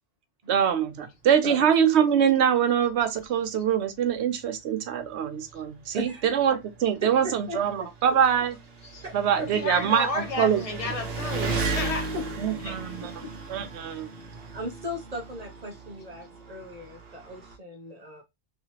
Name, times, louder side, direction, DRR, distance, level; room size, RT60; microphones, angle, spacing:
voice 1, 0.5-8.6 9.1-10.9 12.4-13.1 13.5-14.1, right 8 dB, 80° right, 0.9 m, -24 dB
Engine, 3.0-3.1 3.5-3.6 4.5-4.6 4.8-17.5, right 3 dB, 60° right, 1.1 m, -36 dB
voice 2, 5.9-6.2 7.2-7.9 9.0-9.5 12.1-12.2 13.0-13.1 14.5-18.2, left 1 dB, 45° right, 0.6 m, -37 dB
voice 3, 9.5-12.1 12.6-12.8 14.2-14.3, left 3 dB, 35° left, 0.8 m, -33 dB
3.1 x 2.8 x 2.8 m
omnidirectional pair, 1.1 m